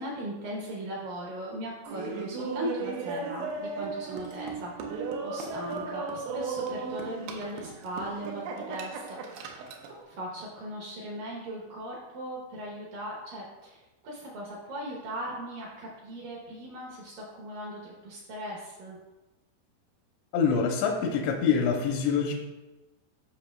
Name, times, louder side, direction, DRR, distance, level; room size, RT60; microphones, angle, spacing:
voice 1, 0.0-19.0, right 1 dB, 75° right, -3 dB, 2.1 m, -39 dB
Laughter, 1.8-9.9, right 4 dB, 90° right, 3.0 m, -36 dB
voice 2, 20.3-22.3, left 6 dB, 85° left, 1 dB, 2.8 m, -25 dB
12.5 x 5.7 x 2.3 m, 1.1 s
omnidirectional pair, 5.1 m